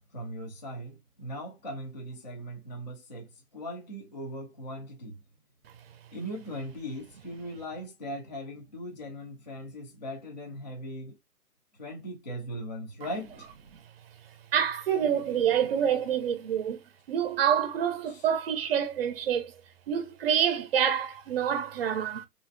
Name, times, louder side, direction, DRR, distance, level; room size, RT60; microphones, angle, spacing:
voice 1, 0.0-5.2 6.1-11.2 11.8-13.5, equal, 30° left, 0.4 m, -39 dB
voice 2, 14.5-19.6 19.9-22.3, right 8 dB, 40° right, 0.6 m, -27 dB
3.0 x 2.5 x 2.5 m
hypercardioid pair, 150°, 47 cm